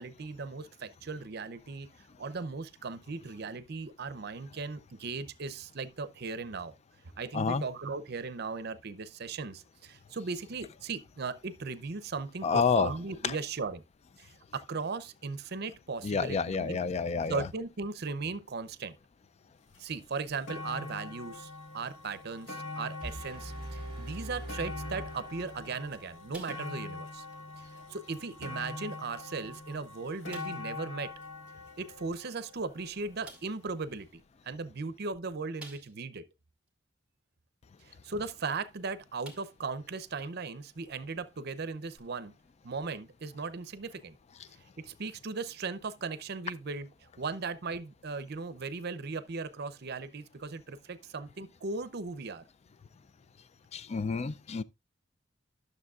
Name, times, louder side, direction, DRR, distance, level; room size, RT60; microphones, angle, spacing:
voice 1, 0.0-1.9 2.2-6.7 7.2-13.8 14.2-16.8 17.3-19.0 19.8-27.3 27.6-31.1 31.8-36.2 37.8-42.3 42.6-44.2 44.8-52.4, right 4 dB, 55° right, 0.7 m, -37 dB
voice 2, 12.4-12.9 13.2-13.4 16.0-17.5 53.7-54.6, left 5 dB, 35° left, 0.4 m, -29 dB
sound 1, 19.7-19.8 20.2-33.4 34.1-34.2, left 3 dB, 90° left, 1.3 m, -44 dB
sound 2, 23.0-26.0, right 1 dB, 30° right, 2.3 m, -42 dB
sound 3, 26.3-27.0 27.3-27.5 28.1-28.2 29.0-29.1 29.5-29.6 30.3-30.7 32.4-32.5 33.2-33.6 35.6-36.2 36.7-36.8 38.6-38.8 39.2-39.7 40.2-40.3 41.9-42.0, right 3 dB, 5° right, 2.2 m, -51 dB
12.0 x 6.7 x 2.4 m
head